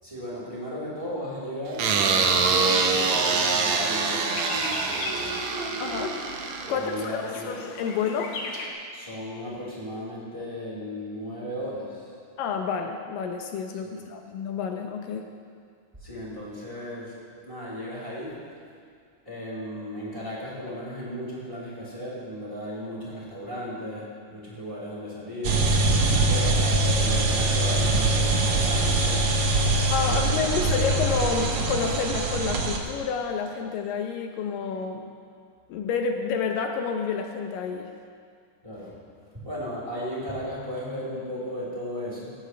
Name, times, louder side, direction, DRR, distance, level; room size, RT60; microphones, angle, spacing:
voice 1, 0.0-5.4 6.7-7.5 8.9-12.1 13.8-13.9 16.0-18.4 19.2-25.7 26.1-29.5 30.0-30.5 38.6-39.0 39.3-42.4, equal, 10° right, -7 dB, 3.8 m, -36 dB
sound 1, 1.8-8.7, left 2 dB, 55° left, 2.5 m, -38 dB
sound 2, 1.8-7.1, right 4 dB, 65° right, 2.0 m, -25 dB
voice 2, 5.8-6.2 6.7-8.4 12.4-15.3 26.0-26.3 29.9-35.1 35.7-37.9, left 5 dB, 80° left, 4 dB, 2.5 m, -29 dB
sound 3, 25.4-32.8, right 2 dB, 90° right, 1.0 m, -23 dB
17.0 x 16.5 x 3.3 m, 2.2 s
omnidirectional pair, 4.0 m